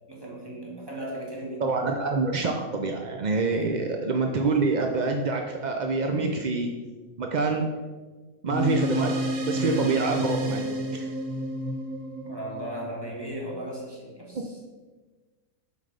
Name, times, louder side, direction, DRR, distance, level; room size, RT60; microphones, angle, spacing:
voice 1, 0.1-1.7 3.5-3.7 6.1-6.3 9.6-9.9 12.2-14.6, right 1 dB, 15° right, -3 dB, 2.0 m, -37 dB
voice 2, 1.6-6.7 7.2-7.6 8.4-9.2 9.4-11.1, right 3 dB, 55° right, 3 dB, 0.5 m, -26 dB
sound 1, 8.5-13.3, equal, 85° right, 1.5 m, -30 dB
7.7 x 5.4 x 5.1 m, 1.3 s
omnidirectional pair, 1.5 m